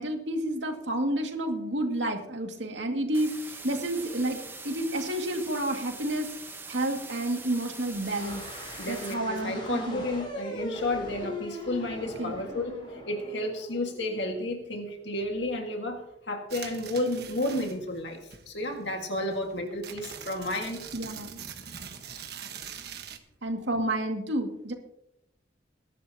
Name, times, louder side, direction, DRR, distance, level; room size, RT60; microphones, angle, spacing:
voice 1, 0.0-6.3 6.7-8.4 8.9-10.0 12.2-12.4 20.9-21.4 23.4-24.7, right 1 dB, 75° right, 3 dB, 2.2 m, -30 dB
sound 1, 3.1-9.1, right 3 dB, 10° right, 1.0 m, -43 dB
sound 2, 7.9-14.7, left 1 dB, 30° left, 4.7 m, -40 dB
voice 2, 8.8-18.2 18.5-20.8, left 1 dB, 70° left, 3 dB, 1.8 m, -32 dB
sound 3, 16.5-18.0 18.3-23.2, right 7 dB, 60° right, 1.3 m, -43 dB
22.0 x 11.5 x 2.9 m, 0.83 s
head